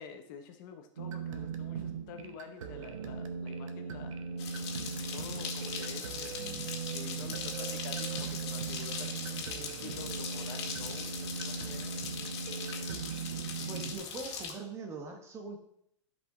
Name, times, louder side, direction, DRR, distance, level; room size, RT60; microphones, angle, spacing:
voice 1, 0.0-4.1 5.1-6.4 6.9-12.0 13.6-14.0, left 7 dB, 40° left, 6 dB, 0.9 m, -48 dB
sound 1, 1.0-14.0, right 6 dB, 80° right, 1.2 m, -39 dB
sound 2, 4.4-14.5, left 6 dB, 55° left, 1.9 m, -40 dB
voice 2, 13.7-15.6, right 3 dB, 15° right, 4 dB, 1.1 m, -42 dB
12.5 x 5.4 x 3.8 m, 0.73 s
supercardioid pair, 160°, 16 cm